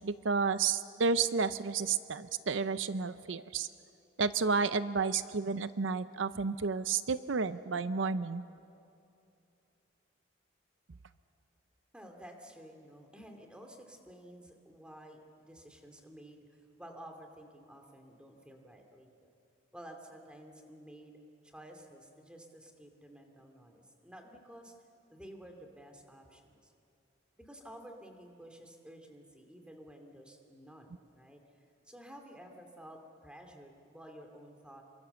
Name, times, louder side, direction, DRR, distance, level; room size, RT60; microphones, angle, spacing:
voice 1, 0.0-3.7 4.2-8.4, right 5 dB, 75° right, 13 dB, 0.6 m, -31 dB
voice 2, 11.9-19.3 19.7-21.2 21.4-24.7 25.1-26.7 27.4-31.4 31.9-34.8, right 1 dB, 5° right, 3 dB, 2.4 m, -52 dB
28.0 x 24.0 x 7.0 m, 2.6 s
head